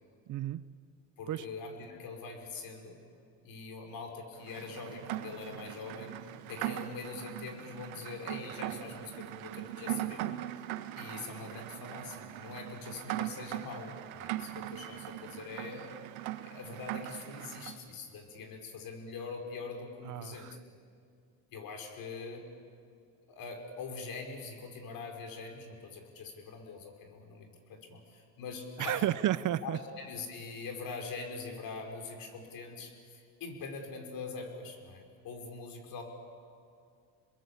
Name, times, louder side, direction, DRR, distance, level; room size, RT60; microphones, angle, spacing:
voice 1, 0.3-0.7 1.3-1.5 20.1-20.6 28.8-29.8, right 12 dB, 50° right, 16 dB, 0.9 m, -32 dB
voice 2, 1.2-3.0 3.4-6.2 6.5-10.3 11.0-16.0 16.4-20.5 21.5-22.5 23.3-29.0 29.6-36.0, left 4 dB, 60° left, 3 dB, 5.4 m, -43 dB
Rain, 4.4-17.8, right 14 dB, 85° right, 1.4 m, -40 dB
29.0 x 21.5 x 8.4 m, 2.3 s
supercardioid pair, 90°, 40 cm